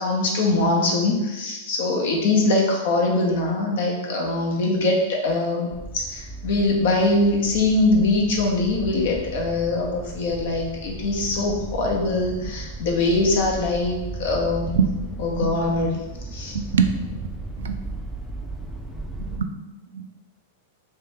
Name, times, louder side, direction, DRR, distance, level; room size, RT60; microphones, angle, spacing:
voice 1, 0.0-14.7 15.2-16.0 16.3-16.6, left 2 dB, 65° left, -1 dB, 0.9 m, -22 dB
sound 1, 5.7-19.4, right 2 dB, ahead, 0.4 m, -36 dB
voice 2, 16.5-16.9 17.6-17.8 19.3-19.6 19.9-20.1, right 6 dB, 80° right, 7 dB, 0.3 m, -23 dB
2.9 x 2.8 x 3.5 m, 1.0 s
hypercardioid pair, 110°, 0 cm